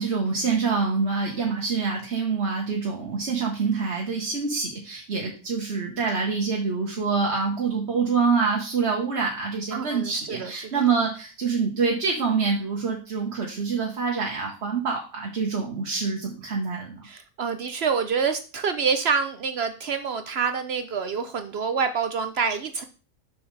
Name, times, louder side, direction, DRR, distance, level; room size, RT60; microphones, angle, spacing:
voice 1, 0.0-17.0, right 5 dB, 50° right, -1 dB, 1.3 m, -26 dB
voice 2, 9.7-10.7 17.0-22.8, right 5 dB, 65° right, 9 dB, 0.6 m, -27 dB
7.0 x 6.2 x 3.2 m, 0.36 s
omnidirectional pair, 1.6 m